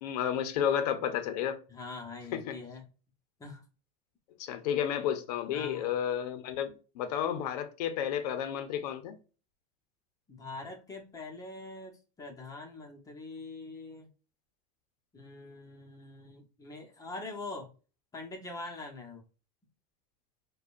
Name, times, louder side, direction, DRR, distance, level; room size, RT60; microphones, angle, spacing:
voice 1, 0.0-1.6 2.5-2.6 4.4-9.1, left 9 dB, 80° left, 0.7 m, -31 dB
voice 2, 1.7-2.8 3.4-3.6 5.5-5.9 10.3-14.1 15.1-17.7 18.1-19.2, left 3 dB, 15° left, 0.9 m, -43 dB
4.9 x 2.3 x 2.5 m
supercardioid pair, 140°, 20 cm